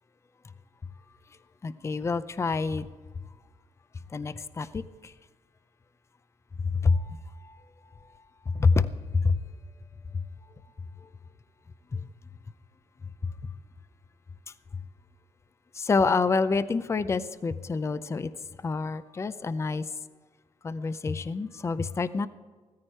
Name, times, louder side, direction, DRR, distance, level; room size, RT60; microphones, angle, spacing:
voice 1, 1.6-2.9 4.1-5.1 6.6-7.6 8.5-9.4 10.1-10.2 11.0-11.1 11.9-12.1 13.2-13.3 15.7-18.3 18.6-19.9 20.6-22.3, left 4 dB, 20° left, 14 dB, 0.5 m, -27 dB
16.0 x 14.0 x 4.5 m, 1.4 s
cardioid pair, 145°, 13 cm